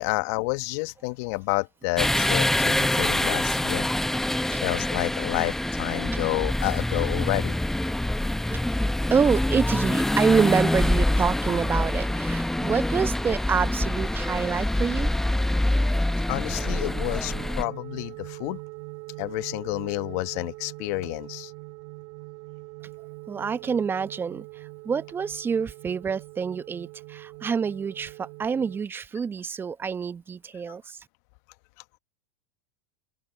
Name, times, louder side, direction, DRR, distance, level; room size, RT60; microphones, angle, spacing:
voice 1, 0.0-3.9 4.6-7.6 16.3-18.6 19.2-21.5, left 26 dB, 60° left, 1.2 m, -29 dB
sound 1, 2.0-17.6, left 1 dB, 5° left, 0.8 m, -25 dB
voice 2, 9.1-15.1 23.3-24.4 24.8-30.8, right 6 dB, 20° right, 1.0 m, -27 dB
sound 2, 16.5-28.8, right 26 dB, 55° right, 3.0 m, -42 dB
open air
hypercardioid pair, 95°, 10 cm